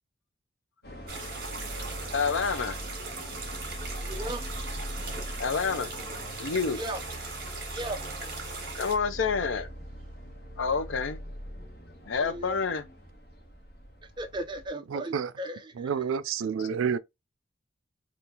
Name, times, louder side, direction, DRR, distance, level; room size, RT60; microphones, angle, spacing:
sound 1, 0.8-14.7, equal, 55° left, 1.0 m, -41 dB
sound 2, 1.1-8.9, right 3 dB, 50° right, 1.6 m, -39 dB
voice 1, 2.1-2.8 5.4-5.9 6.4-6.8 8.8-9.7 10.6-11.2 12.1-12.8, left 5 dB, 80° left, 0.5 m, -28 dB
voice 2, 4.0-4.4 6.8-7.0 7.7-8.0 12.2-12.5 14.2-15.9, right 1 dB, 25° right, 0.4 m, -36 dB
voice 3, 14.9-15.3 15.7-17.0, right 7 dB, 90° right, 0.4 m, -29 dB
3.6 x 2.4 x 2.8 m
head